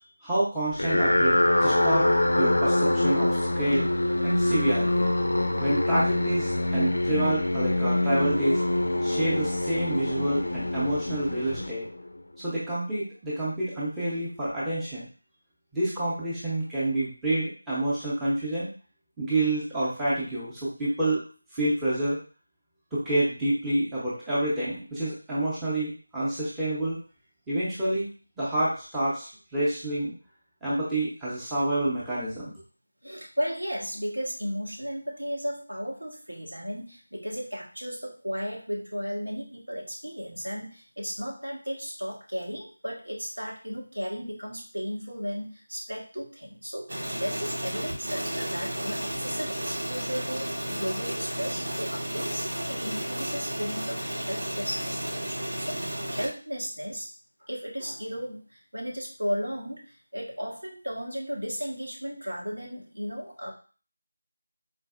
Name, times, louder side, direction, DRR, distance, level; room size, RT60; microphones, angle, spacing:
voice 1, 0.2-3.9 4.2-5.1 5.6-8.6 9.0-11.9 12.4-15.1 15.7-18.7 19.2-21.3 21.5-22.2 22.9-27.0 27.5-28.1 28.4-30.1 30.6-32.5, right 1 dB, 5° right, -10 dB, 0.6 m, -28 dB
sound 1, 0.7-12.2, left 1 dB, 65° left, 0.3 m, -25 dB
voice 2, 33.0-57.1 57.4-63.5, equal, 90° right, -2 dB, 1.1 m, -35 dB
sound 2, 46.9-56.3, right 1 dB, 60° right, 0.8 m, -33 dB
4.0 x 2.0 x 2.4 m, 0.37 s
figure-of-eight pair, 170°, 0 cm